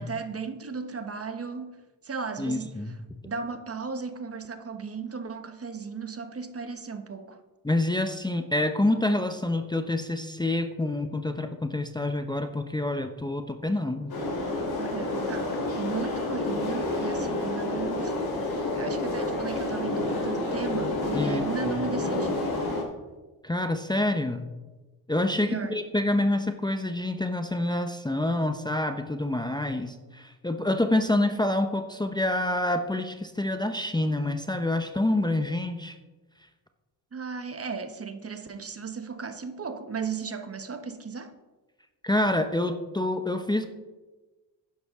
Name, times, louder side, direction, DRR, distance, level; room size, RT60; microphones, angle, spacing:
voice 1, 0.0-3.0 3.2-7.4 14.8-22.4 25.5-25.8 37.1-41.3, right 5 dB, 30° right, 8 dB, 1.1 m, -35 dB
voice 2, 2.4-3.0 7.6-14.1 21.1-21.4 23.4-24.5 25.1-36.0 42.0-43.7, left 1 dB, 10° left, 6 dB, 0.8 m, -27 dB
sound 1, 14.1-22.8, left 2 dB, 50° left, 3.8 m, -29 dB
11.0 x 10.0 x 3.7 m, 1.2 s
supercardioid pair, 65°, 46 cm